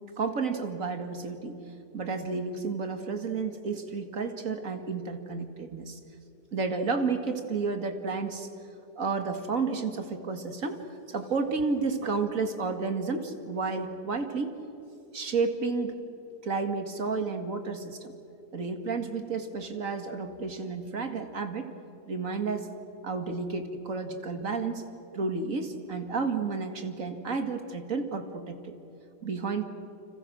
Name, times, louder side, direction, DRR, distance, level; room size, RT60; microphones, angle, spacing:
voice 1, 0.2-1.5 1.9-6.0 6.5-8.5 9.0-10.8 11.1-14.5 15.1-16.0 16.4-18.1 18.5-21.7 22.1-22.7 23.0-24.8 25.1-28.7 29.2-29.6, right 4 dB, 50° right, 7 dB, 2.4 m, -31 dB
29.5 x 26.5 x 6.3 m, 2.9 s
omnidirectional pair, 1.8 m